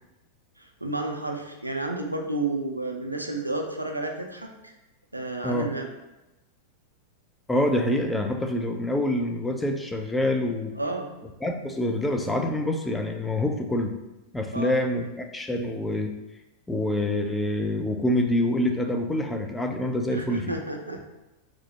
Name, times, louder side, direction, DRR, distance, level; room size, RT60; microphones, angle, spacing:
voice 1, 0.6-4.7 5.1-5.9 10.8-11.1 14.5-14.9 20.1-21.0, right 2 dB, 85° right, 3 dB, 0.4 m, -31 dB
voice 2, 7.5-10.7 11.4-14.0 14.3-16.1 16.7-20.5, left 1 dB, 5° left, 4 dB, 0.4 m, -26 dB
4.4 x 2.0 x 2.8 m, 0.97 s
figure-of-eight pair, 90°, 0 cm